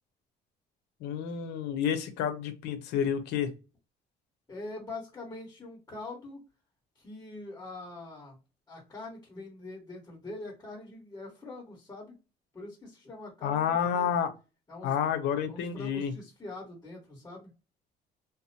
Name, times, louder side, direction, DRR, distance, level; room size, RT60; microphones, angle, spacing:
voice 1, 1.0-3.5 13.4-14.3 14.8-16.1, left 8 dB, 85° left, 0.6 m, -29 dB
voice 2, 4.5-6.4 6.9-8.4 8.7-12.2 12.5-14.1 14.7-14.9 15.5-17.5, left 2 dB, 20° left, 1.4 m, -43 dB
2.6 x 2.1 x 2.7 m
cardioid pair, 110°, 17 cm